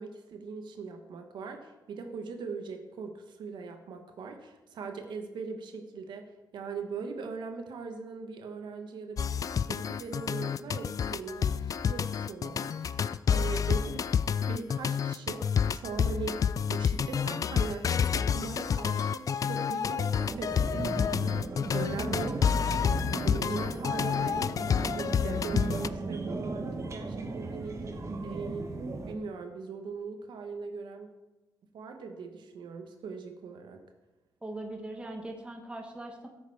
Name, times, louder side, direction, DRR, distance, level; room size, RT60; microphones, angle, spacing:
voice 1, 0.0-9.3 9.6-14.0 14.5-21.0 21.7-22.9 23.2-24.4 24.8-28.7 29.1-31.1 31.7-33.8, right 4 dB, 80° right, 5 dB, 1.2 m, -40 dB
sound 1, 9.2-25.9, left 7 dB, 50° left, 0.3 m, -29 dB
sound 2, 20.3-29.1, right 3 dB, 40° right, 1.3 m, -36 dB
voice 2, 22.0-22.5 34.4-36.3, right 1 dB, 15° right, 3 dB, 1.3 m, -41 dB
13.0 x 6.6 x 4.8 m, 1.1 s
cardioid pair, 90°, 8 cm